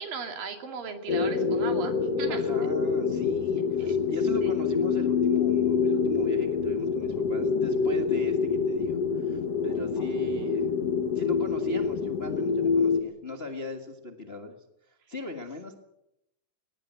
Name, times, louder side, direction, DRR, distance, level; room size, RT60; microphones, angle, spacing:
voice 1, 0.0-2.4 3.8-3.9 4.4-4.6, right 6 dB, 85° right, 5 dB, 4.2 m, -37 dB
sound 1, 1.1-13.0, left 5 dB, 55° left, 2.3 m, -26 dB
voice 2, 2.3-10.7 11.1-14.5 15.1-15.7, left 2 dB, 30° left, 4 dB, 1.1 m, -38 dB
20.5 x 19.5 x 8.1 m, 0.85 s
omnidirectional pair, 3.9 m